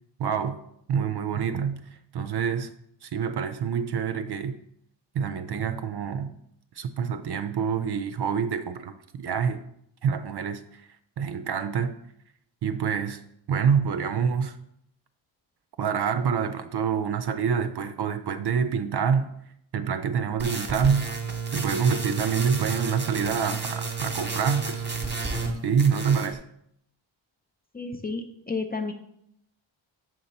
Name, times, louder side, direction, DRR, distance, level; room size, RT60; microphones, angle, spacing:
voice 1, 0.2-0.6 0.9-2.7 3.0-4.6 5.1-6.3 6.8-9.6 10.0-10.8 11.2-12.0 12.6-13.2 13.5-14.6 15.8-19.3 19.7-21.1 21.5-24.8 25.6-26.4, right 7 dB, 55° right, 10 dB, 0.5 m, -26 dB
sound 1, 20.4-25.5 25.8-26.3, right 4 dB, 20° right, 1.0 m, -32 dB
voice 2, 27.7-28.9, left 4 dB, 20° left, 6 dB, 0.6 m, -31 dB
7.3 x 2.9 x 5.2 m, 0.74 s
cardioid pair, 90°, 48 cm